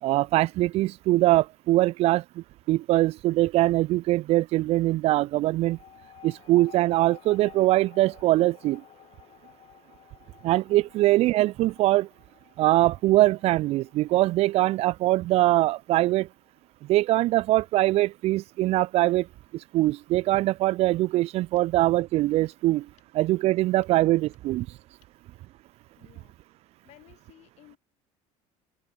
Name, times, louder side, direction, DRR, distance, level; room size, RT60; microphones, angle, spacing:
voice 1, 0.0-5.8 6.2-8.8 10.4-12.1 12.6-16.3 16.8-19.3 19.5-22.9 23.1-24.7, right 17 dB, 50° right, 0.4 m, -22 dB
sound 1, 5.7-16.6, left 11 dB, 45° left, 2.9 m, -53 dB
voice 2, 26.0-26.3 26.8-27.8, left 16 dB, 60° left, 1.8 m, -55 dB
open air
cardioid pair, 120°, 13 cm